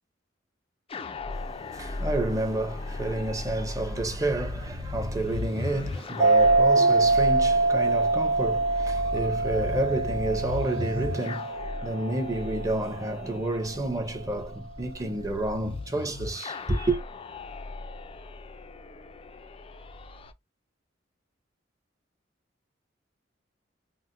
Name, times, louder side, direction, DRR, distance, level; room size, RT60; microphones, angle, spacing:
sound 1, 0.9-20.3, left 2 dB, 30° left, 0.3 m, -37 dB
voice 1, 1.3-17.0, right 1 dB, 20° right, 0.6 m, -30 dB
sound 2, 6.2-13.2, right 3 dB, 65° right, 0.7 m, -24 dB
3.8 x 2.0 x 2.6 m
head